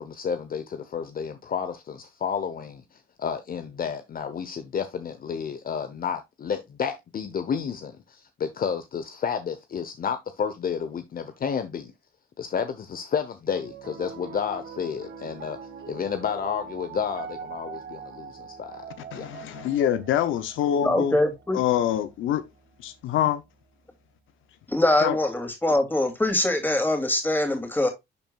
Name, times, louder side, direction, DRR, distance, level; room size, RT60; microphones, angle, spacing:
voice 1, 0.0-11.9 12.4-15.6 15.9-18.9 19.1-19.3, left 7 dB, 45° left, 0.9 m, -31 dB
Piano, 13.5-23.8, right 6 dB, 75° right, 1.7 m, -43 dB
voice 2, 19.1-21.2 21.5-22.4 22.8-23.4 25.0-25.2, left 10 dB, 80° left, 0.7 m, -25 dB
voice 3, 20.8-21.6 24.7-27.9, left 1 dB, 10° left, 2.7 m, -23 dB
11.0 x 4.5 x 2.4 m
cardioid pair, 90°, 20 cm